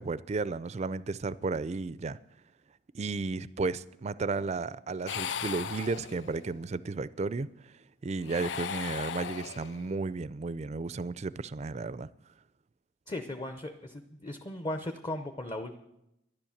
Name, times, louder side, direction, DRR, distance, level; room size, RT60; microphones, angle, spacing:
voice 1, 0.0-2.2 2.9-7.7 8.0-12.1, right 3 dB, 35° right, 0.4 m, -33 dB
sound 1, 5.1-6.5 8.2-10.0, left 8 dB, 70° left, 0.4 m, -37 dB
voice 2, 13.1-15.8, left 1 dB, 25° left, 0.7 m, -37 dB
12.0 x 11.0 x 7.2 m
head